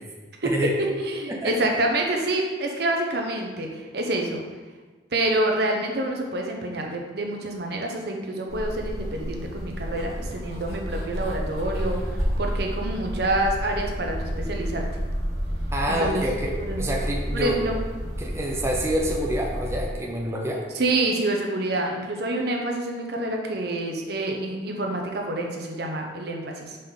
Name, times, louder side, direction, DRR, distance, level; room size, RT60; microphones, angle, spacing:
voice 1, 0.4-0.8 1.3-1.5 15.7-17.6 18.2-20.6, right 1 dB, 15° right, -2 dB, 0.6 m, -27 dB
voice 2, 1.0-4.4 5.1-14.8 15.9-16.2 16.6-16.9 17.3-17.8 20.7-26.8, right 1 dB, 60° right, 1 dB, 0.8 m, -27 dB
sound 1, 8.5-19.8, equal, 35° left, 1.9 m, -30 dB
5.2 x 3.8 x 5.6 m, 1.3 s
head